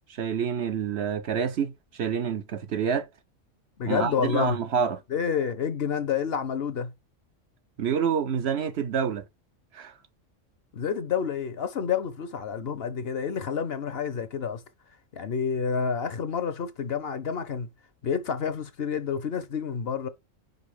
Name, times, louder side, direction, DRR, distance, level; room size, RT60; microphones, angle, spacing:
voice 1, 0.2-3.1 3.9-5.0 7.8-9.2 9.7-9.9, right 7 dB, 60° right, 0.9 m, -27 dB
voice 2, 3.8-4.6 5.1-6.9 10.7-14.6 15.1-17.7 18.0-20.1, left 7 dB, 55° left, 0.9 m, -29 dB
5.5 x 4.8 x 4.9 m
omnidirectional pair, 1.3 m